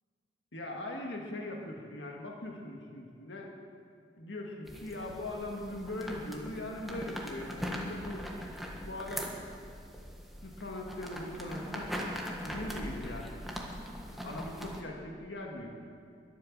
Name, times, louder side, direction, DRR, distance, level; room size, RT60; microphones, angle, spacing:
voice 1, 0.5-3.5 4.1-8.3 8.8-9.4 10.4-11.9 12.4-13.4 14.2-15.7, left 1 dB, 80° left, 0 dB, 2.1 m, -40 dB
sound 1, 4.7-14.8, equal, ahead, 1.6 m, -41 dB
22.0 x 8.4 x 7.5 m, 2.2 s
head